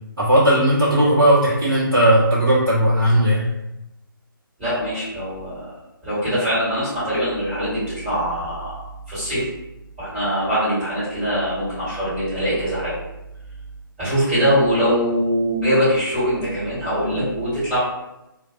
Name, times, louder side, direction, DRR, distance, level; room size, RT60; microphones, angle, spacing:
voice 1, 0.2-3.5, right 1 dB, 80° right, -9 dB, 0.9 m, -16 dB
voice 2, 4.6-5.7 6.0-8.8 9.1-9.5 10.0-13.0 14.0-17.8, equal, 15° right, -15 dB, 1.4 m, -22 dB
2.5 x 2.2 x 2.6 m, 0.93 s
figure-of-eight pair, 145°, 12 cm